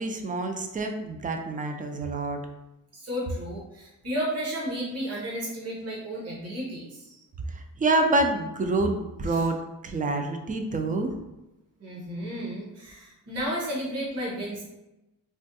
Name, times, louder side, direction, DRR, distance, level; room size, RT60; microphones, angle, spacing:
voice 1, 0.0-2.4 7.5-9.6 9.8-11.1, right 2 dB, 25° right, 5 dB, 0.3 m, -27 dB
voice 2, 2.9-7.2 11.8-14.6, equal, 45° right, -5 dB, 1.1 m, -33 dB
3.4 x 2.2 x 2.7 m, 0.96 s
cardioid pair, 105°, 34 cm